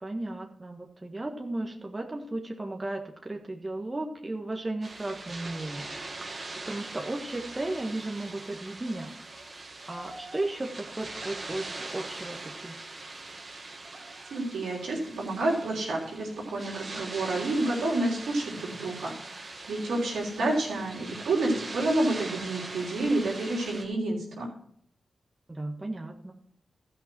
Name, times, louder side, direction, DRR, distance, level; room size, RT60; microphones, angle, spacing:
voice 1, 0.0-5.9 6.7-9.1 9.9-11.7 11.9-12.4 12.6-12.8 25.5-26.3, right 2 dB, 30° right, 2 dB, 1.6 m, -35 dB
sound 1, 4.8-23.8, right 2 dB, 50° right, 2.1 m, -41 dB
voice 2, 14.3-24.5, right 2 dB, 80° right, -4 dB, 3.4 m, -29 dB
13.5 x 5.8 x 6.1 m, 0.67 s
supercardioid pair, 40°, 0 cm